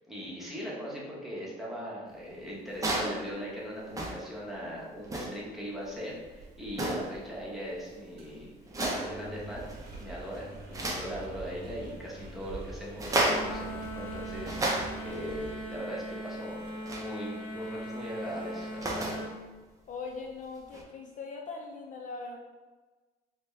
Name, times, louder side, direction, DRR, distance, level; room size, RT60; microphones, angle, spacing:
voice 1, 0.1-9.7 10.0-19.2, equal, ahead, -6 dB, 1.0 m, -40 dB
sound 1, 2.7-3.2 3.9-4.3 5.0-5.4 6.7-7.2 8.7-9.2 9.6-10.0 10.3-11.1 12.9-13.6 14.2-15.2 16.9-17.1 18.5-19.3 20.7-20.8, right 1 dB, 20° right, 0.6 m, -32 dB
Engine, 5.8-16.7, right 2 dB, 75° right, 0.9 m, -47 dB
sound 2, 13.2-19.3, right 1 dB, 30° left, 1.3 m, -39 dB
voice 2, 19.9-22.4, left 4 dB, 50° left, 1 dB, 0.4 m, -40 dB
4.0 x 2.2 x 3.2 m, 1.3 s
cardioid pair, 110°, 17 cm